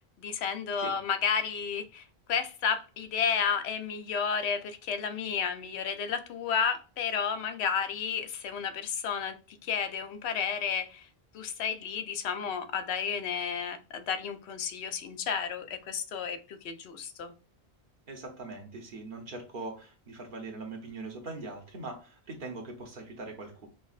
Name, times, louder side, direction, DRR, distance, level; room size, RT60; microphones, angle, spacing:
voice 1, 0.2-11.1 11.3-17.3, left 6 dB, 80° left, 8 dB, 0.8 m, -32 dB
voice 2, 18.1-23.7, right 3 dB, 55° right, 3 dB, 0.9 m, -41 dB
5.3 x 2.2 x 2.4 m, 0.34 s
omnidirectional pair, 1.1 m